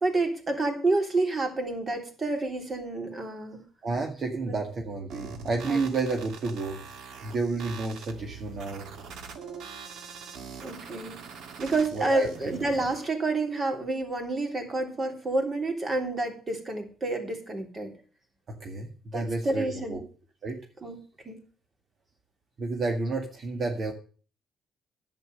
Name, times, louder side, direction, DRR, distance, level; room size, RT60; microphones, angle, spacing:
voice 1, 0.0-3.6 4.5-4.6 5.7-5.9 10.6-11.2 11.6-17.9 19.1-20.0 20.8-21.4, right 2 dB, 35° right, 4 dB, 3.4 m, -29 dB
voice 2, 3.8-6.8 7.2-8.9 11.9-12.5 18.6-20.0 20.4-20.6 22.6-23.9, right 3 dB, 55° right, 2 dB, 2.0 m, -31 dB
sound 1, 5.1-13.1, right 5 dB, 80° right, 1.7 m, -43 dB
11.0 x 8.7 x 6.6 m, 0.39 s
cardioid pair, 95°, 0 cm